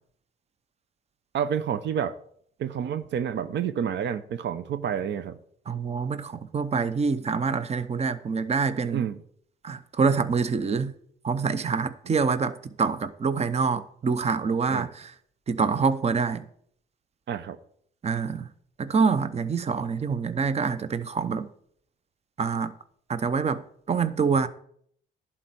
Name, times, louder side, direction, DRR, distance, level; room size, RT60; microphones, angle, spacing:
voice 1, 1.3-2.2 2.6-5.4 8.9-9.2 14.7-14.9 17.3-17.6, right 8 dB, 65° right, 0.6 m, -29 dB
voice 2, 5.7-9.0 9.6-10.9 11.2-15.1 15.5-16.4 18.0-18.5 18.8-21.5 22.4-22.7 23.1-23.6 23.9-24.5, right 5 dB, 30° right, 0.8 m, -26 dB
11.0 x 4.3 x 7.6 m
cardioid pair, 90°, 20 cm